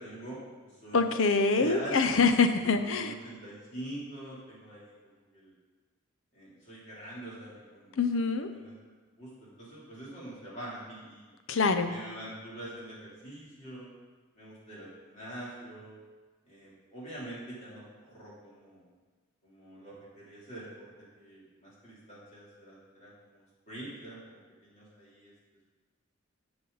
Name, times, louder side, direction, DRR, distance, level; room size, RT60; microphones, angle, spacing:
voice 1, 0.0-1.1 1.6-5.5 6.3-8.0 8.5-8.7 9.2-11.3 11.8-13.9 14.3-16.0 16.4-18.9 19.4-20.9 21.1-25.3, right 1 dB, 35° left, -7 dB, 3.0 m, -44 dB
voice 2, 0.9-3.1 8.0-8.5 11.5-11.9, left 4 dB, 70° left, 9 dB, 0.7 m, -25 dB
12.5 x 6.1 x 4.0 m, 1.4 s
head